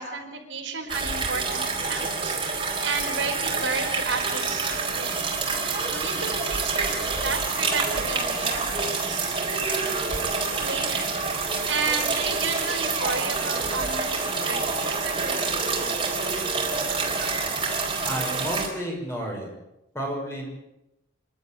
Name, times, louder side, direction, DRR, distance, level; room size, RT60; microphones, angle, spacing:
voice 1, 0.0-2.4 2.8-5.2 5.9-6.9 7.2-9.4 10.6-11.1 11.7-15.4 15.7-15.9, right 4 dB, 85° right, 3 dB, 4.7 m, -32 dB
sound 1, 0.9-18.7, right 4 dB, 25° right, 4.1 m, -27 dB
voice 2, 18.0-19.5 19.9-20.5, right 1 dB, 15° left, 0 dB, 6.2 m, -31 dB
26.5 x 12.0 x 9.1 m, 0.90 s
head